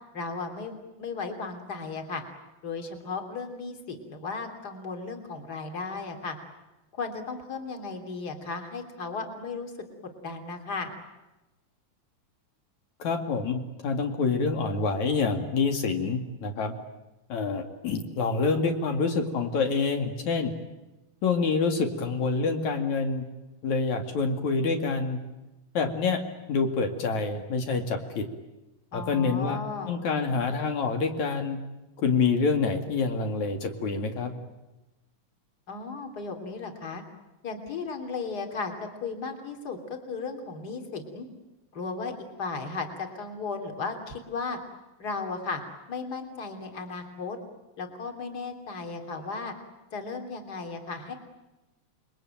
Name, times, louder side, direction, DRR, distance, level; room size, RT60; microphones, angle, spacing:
voice 1, 0.1-2.2 2.6-6.4 6.9-9.7 10.2-10.9 28.9-29.9 35.7-37.0 37.4-38.7 39.0-41.3 41.7-42.1 42.4-44.6 45.0-45.6 45.9-47.4 47.8-49.5 49.9-51.1, left 4 dB, 35° left, 5 dB, 3.5 m, -35 dB
voice 2, 13.0-16.7 17.3-20.5 21.2-23.2 23.6-25.2 25.8-26.2 26.5-28.3 28.9-29.6 29.9-31.6 32.0-34.3, left 4 dB, 75° left, 4 dB, 3.6 m, -27 dB
29.0 x 22.0 x 9.1 m, 1.0 s
omnidirectional pair, 3.4 m